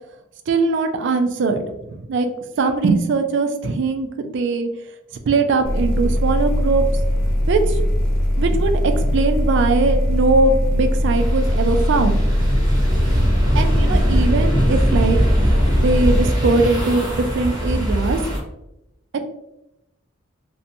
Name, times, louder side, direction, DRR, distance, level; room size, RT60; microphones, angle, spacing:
voice 1, 0.5-2.3 2.6-4.7 5.3-6.8 7.5-7.8 8.4-12.6 13.5-15.2 15.8-18.2, right 3 dB, 60° right, 7 dB, 0.3 m, -20 dB
sound 1, 5.6-16.2, equal, 80° left, 0.5 m, -20 dB
sound 2, 11.1-18.4, equal, 20° right, 0.6 m, -21 dB
2.6 x 2.1 x 2.6 m, 0.88 s
head